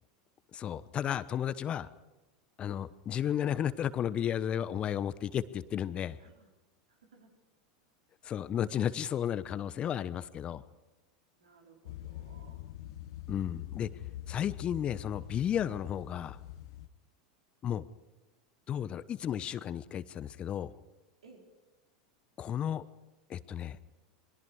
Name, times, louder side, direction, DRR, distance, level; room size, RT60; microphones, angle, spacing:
voice 1, 0.5-1.9 2.6-6.2 8.2-10.6 13.3-13.9 14.3-16.4 17.6-17.8 18.7-20.7 22.4-22.8 23.3-23.8, left 9 dB, 35° left, 15 dB, 1.0 m, -33 dB
voice 2, 6.2-6.5 6.9-7.3 11.4-12.7 21.2-21.4, right 4 dB, 80° right, 2 dB, 4.5 m, -59 dB
sound 1, 11.8-16.9, left 13 dB, 65° left, 1.1 m, -44 dB
27.5 x 22.5 x 4.9 m, 1.1 s
hypercardioid pair, 85°, 3 cm